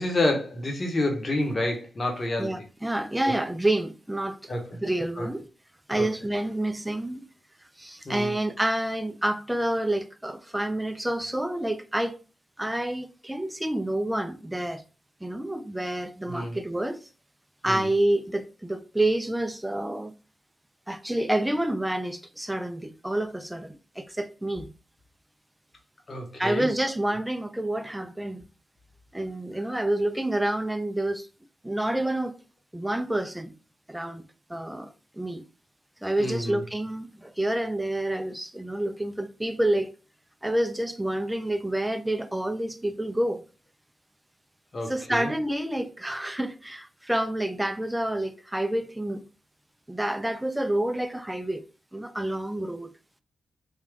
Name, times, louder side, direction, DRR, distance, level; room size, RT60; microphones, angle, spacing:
voice 1, 0.0-2.5 3.2-3.3 4.5-4.7 5.2-5.3 6.0-6.1 8.0-8.3 16.3-16.6 17.7-17.9 26.1-26.7 36.2-36.6 44.7-45.3, left 1 dB, 45° left, 1.1 m, -28 dB
voice 2, 2.4-4.5 4.8-5.5 5.9-7.3 7.8-12.2 12.6-14.8 15.2-17.1 17.6-20.2 20.9-24.7 26.4-28.4 29.1-31.3 31.6-32.4 32.7-33.6 33.9-34.2 34.5-35.4 36.0-39.9 40.4-43.4 44.9-49.2 49.9-51.6 51.9-52.9, right 1 dB, 10° right, 0.4 m, -28 dB
3.5 x 2.3 x 3.5 m
cardioid pair, 55°, 0 cm